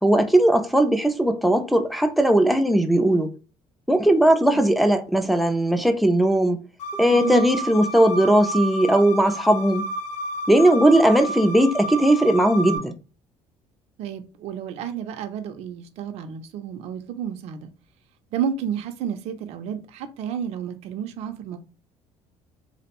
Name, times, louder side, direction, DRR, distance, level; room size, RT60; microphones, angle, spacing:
voice 1, 0.0-3.3 3.9-6.6 7.0-9.8 10.5-12.9, right 1 dB, ahead, 0.4 m, -18 dB
sound 1, 6.8-12.8, right 1 dB, 90° left, 0.4 m, -31 dB
voice 2, 7.1-7.4 10.7-10.8 14.0-17.7 18.3-21.6, right 8 dB, 65° right, 0.4 m, -31 dB
2.5 x 2.0 x 2.9 m
cardioid pair, 125°, 11 cm